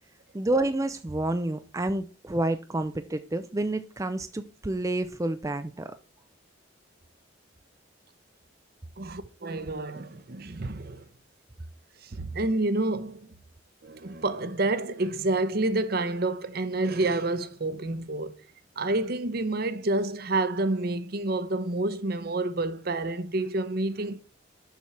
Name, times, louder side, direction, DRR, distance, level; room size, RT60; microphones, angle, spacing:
voice 1, 0.3-6.0, right 2 dB, 15° right, 0.4 m, -29 dB
voice 2, 9.0-11.0 12.0-13.3 13.8-18.3 18.8-24.2, right 2 dB, 50° right, 0.8 m, -29 dB
7.2 x 6.2 x 5.5 m
head